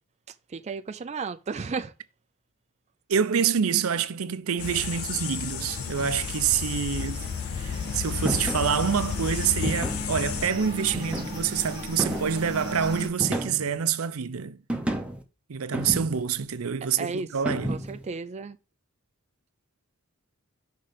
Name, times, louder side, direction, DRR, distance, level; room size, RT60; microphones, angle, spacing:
voice 1, 0.5-1.9 17.0-17.3 17.7-18.6, right 4 dB, 30° right, 0.4 m, -33 dB
voice 2, 3.1-14.6 15.5-17.9, right 7 dB, 80° right, 0.6 m, -27 dB
sound 1, 4.6-10.5, left 8 dB, 80° left, 0.4 m, -32 dB
sound 2, 4.6-13.1, left 1 dB, 55° left, 2.0 m, -38 dB
sound 3, 8.3-8.7 9.6-10.1 10.9-11.5 12.0-12.5 13.2-13.8 14.7-15.2 15.7-16.4 17.5-18.1, right 1 dB, 5° right, 0.8 m, -31 dB
5.8 x 3.7 x 5.1 m
head